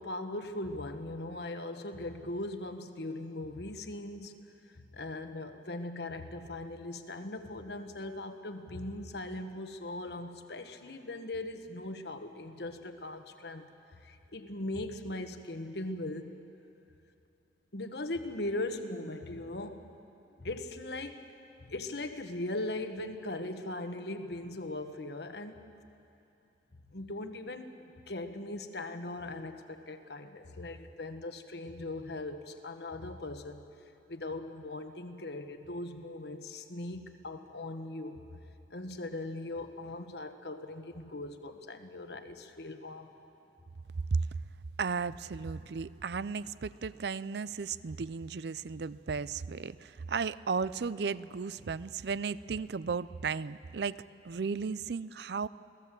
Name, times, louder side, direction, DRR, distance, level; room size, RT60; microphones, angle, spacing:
voice 1, 0.0-4.3 4.7-13.7 14.0-16.3 17.7-19.8 20.4-21.2 21.6-25.6 26.9-33.6 34.1-38.2 38.7-43.1, left 2 dB, 70° left, 7 dB, 1.3 m, -39 dB
voice 2, 44.1-44.4 44.8-55.5, right 5 dB, 65° right, 17 dB, 0.5 m, -35 dB
28.5 x 18.0 x 7.5 m, 2.8 s
head